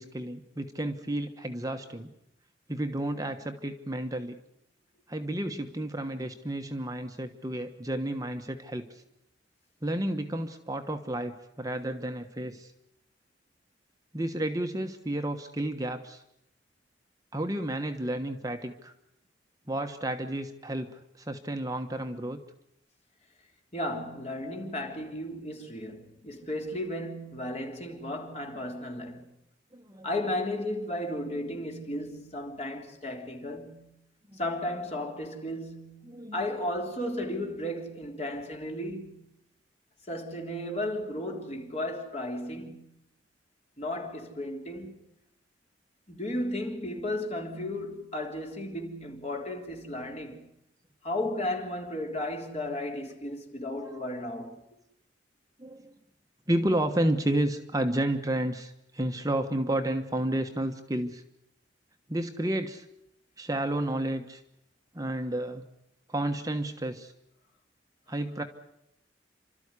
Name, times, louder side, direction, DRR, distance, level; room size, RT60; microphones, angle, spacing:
voice 1, 0.0-2.1 2.7-4.4 5.1-9.0 9.8-12.7 14.1-16.2 17.3-18.9 19.7-22.4 28.5-28.7 29.7-30.1 34.3-34.4 36.1-36.4 53.9-54.0 55.6-55.9 56.5-61.2 62.1-62.8 63.4-64.4 64.9-65.6 66.1-67.1 68.1-68.4, right 1 dB, 20° right, 1.2 m, -31 dB
voice 2, 23.7-29.3 30.0-34.0 34.4-39.2 40.1-42.9 43.8-45.0 46.1-50.4 51.0-54.6, left 1 dB, 35° left, 3.8 m, -34 dB
29.5 x 13.5 x 9.8 m
head